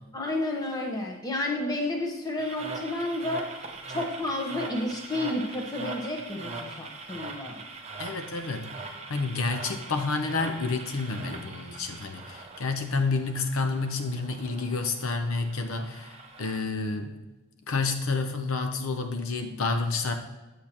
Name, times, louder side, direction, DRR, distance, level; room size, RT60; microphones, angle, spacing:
voice 1, 0.1-3.5 3.9-7.6, left 1 dB, 20° left, 0 dB, 1.0 m, -31 dB
sound 1, 2.4-16.6, right 3 dB, 30° right, 0.7 m, -41 dB
voice 2, 8.0-8.8 9.1-17.2 17.7-20.1, left 3 dB, 80° left, 6 dB, 0.7 m, -29 dB
8.4 x 7.2 x 2.9 m, 1.1 s
head